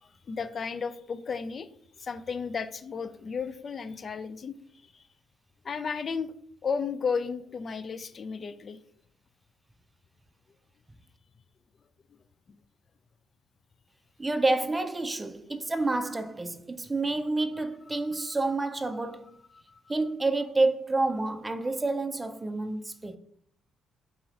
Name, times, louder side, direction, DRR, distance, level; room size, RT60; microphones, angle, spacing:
voice 1, 0.0-1.7 2.0-4.6 4.9-5.0 5.6-6.3 6.6-8.8 12.5-12.6 19.5-19.8, left 5 dB, 45° left, 0.3 m, -33 dB
voice 2, 14.2-19.4 19.9-23.2, right 2 dB, 20° right, 0.4 m, -29 dB
4.0 x 3.0 x 3.7 m
cardioid pair, 75°, 0 cm